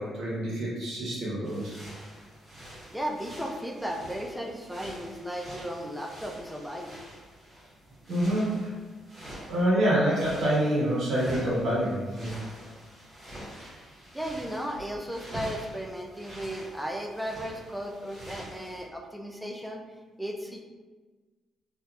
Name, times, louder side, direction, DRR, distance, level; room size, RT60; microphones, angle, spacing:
voice 1, 0.0-1.8 8.1-8.7 9.5-12.3, right 1 dB, 70° right, -6 dB, 1.3 m, -26 dB
sound 1, 1.4-9.7 10.0-18.9, equal, 30° right, 1.4 m, -45 dB
voice 2, 2.9-6.9 12.7-12.8 13.3-13.5 14.1-19.8 20.2-20.6, equal, ahead, 2 dB, 0.4 m, -35 dB
3.4 x 2.7 x 2.4 m, 1.3 s
cardioid pair, 90°, 0 cm